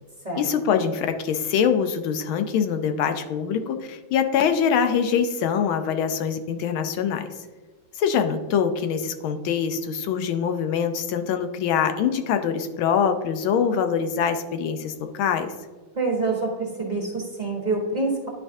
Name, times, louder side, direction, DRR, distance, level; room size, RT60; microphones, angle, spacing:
voice 1, 0.3-7.3 7.9-15.5, left 7 dB, 90° left, 7 dB, 1.5 m, -24 dB
voice 2, 15.9-18.3, right 3 dB, 30° right, -2 dB, 1.0 m, -26 dB
11.0 x 4.7 x 2.7 m, 1.3 s
omnidirectional pair, 2.2 m